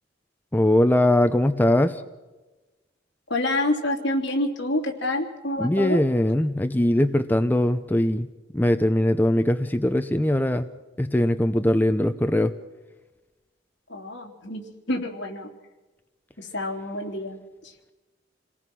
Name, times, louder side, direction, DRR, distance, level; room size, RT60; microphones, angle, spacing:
voice 1, 0.5-2.0 5.6-8.3 8.5-10.7 11.0-12.5, left 1 dB, 10° left, 8 dB, 0.7 m, -21 dB
voice 2, 3.3-6.0 13.9-15.5 16.4-17.7, left 1 dB, 65° left, 1 dB, 3.4 m, -28 dB
28.0 x 18.5 x 6.2 m, 1.1 s
head